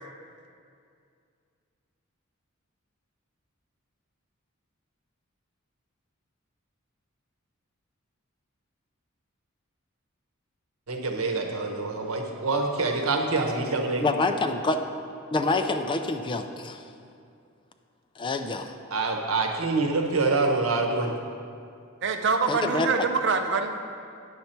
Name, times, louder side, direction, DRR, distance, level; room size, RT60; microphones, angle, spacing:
voice 1, 10.9-14.0 18.9-21.1, right 3 dB, 90° right, 2 dB, 1.0 m, -26 dB
voice 2, 14.0-14.8 15.3-16.8 18.2-18.7 22.5-22.9, left 3 dB, 25° left, 6 dB, 0.4 m, -26 dB
voice 3, 22.0-23.7, right 4 dB, 60° right, 5 dB, 0.6 m, -25 dB
9.3 x 6.6 x 4.3 m, 2.4 s
head